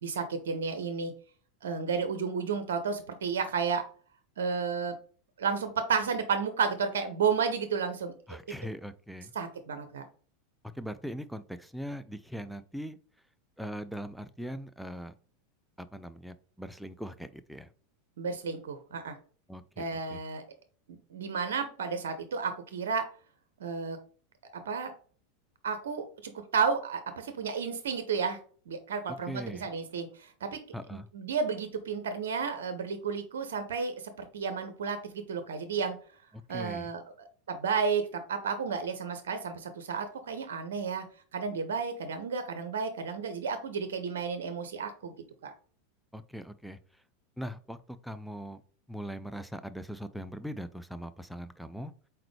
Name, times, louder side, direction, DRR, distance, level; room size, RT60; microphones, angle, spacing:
voice 1, 0.0-1.1 1.6-3.8 4.4-4.9 5.4-8.1 9.3-10.1 18.2-19.1 19.8-20.4 20.9-23.0 23.6-24.0 24.5-24.9 25.6-28.4 28.7-30.6 30.9-36.0 36.5-41.1 41.3-45.1 45.4-45.5, right 5 dB, 70° right, 9 dB, 0.6 m, -32 dB
voice 2, 8.3-9.3 10.7-13.0 13.6-15.1 15.8-17.7 19.5-19.8 20.1-20.2 29.3-29.7 30.7-31.1 36.5-36.9 46.1-46.8 47.4-48.6 48.9-51.9, equal, ahead, 11 dB, 0.4 m, -40 dB
4.3 x 3.9 x 3.2 m, 0.43 s
hypercardioid pair, 90°, 0 cm